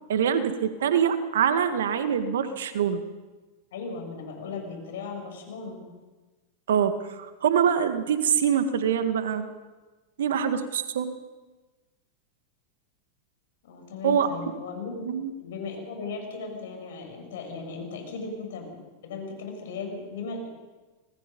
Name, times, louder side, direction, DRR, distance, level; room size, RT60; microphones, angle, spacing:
voice 1, 0.1-3.0 6.7-9.5 10.2-11.1 14.0-14.3 15.1-15.3, right 8 dB, 70° right, 9 dB, 1.8 m, -24 dB
voice 2, 3.7-5.8 13.6-15.1 15.4-20.5, left 4 dB, 70° left, 2 dB, 7.4 m, -37 dB
25.5 x 20.0 x 5.5 m, 1.2 s
hypercardioid pair, 95°, 0 cm